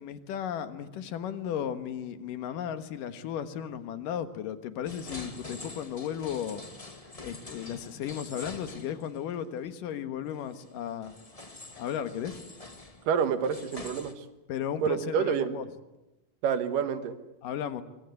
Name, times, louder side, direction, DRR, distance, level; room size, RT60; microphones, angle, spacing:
voice 1, 0.0-6.6 7.2-11.1 11.8-12.4 14.5-15.7 17.4-17.8, left 9 dB, 85° left, 10 dB, 3.1 m, -35 dB
sound 1, 4.8-9.4 9.6-9.7 10.5-14.1, left 2 dB, 15° left, 1.3 m, -45 dB
voice 2, 13.1-14.2 14.8-15.6 16.4-17.2, right 7 dB, 85° right, 10 dB, 3.2 m, -28 dB
24.0 x 23.5 x 9.6 m, 0.98 s
omnidirectional pair, 3.7 m